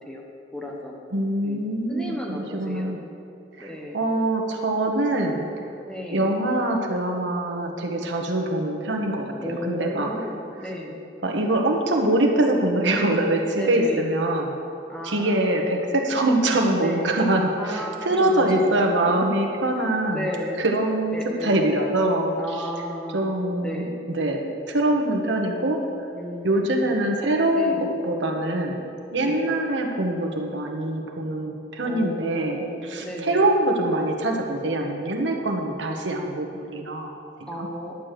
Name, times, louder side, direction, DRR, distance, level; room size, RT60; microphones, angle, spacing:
voice 1, 0.5-1.0 1.4-1.6 1.9-3.0 3.6-4.0 5.8-6.3 9.4-11.0 13.5-14.1 14.9-15.6 16.8-17.1 17.6-19.0 20.1-20.6 21.1-21.7 22.4-23.3 23.6-24.0 26.1-27.0 27.5-27.9 29.2-29.5 31.8-33.5 37.5-38.0, left 1 dB, 5° left, -1 dB, 1.0 m, -33 dB
voice 2, 1.1-3.0 3.6-5.5 6.1-10.1 11.2-14.5 15.0-20.3 20.6-22.7 23.1-24.4 24.7-25.8 26.4-28.8 29.1-37.7, right 1 dB, 90° right, 1 dB, 1.2 m, -24 dB
11.0 x 4.9 x 7.5 m, 2.6 s
head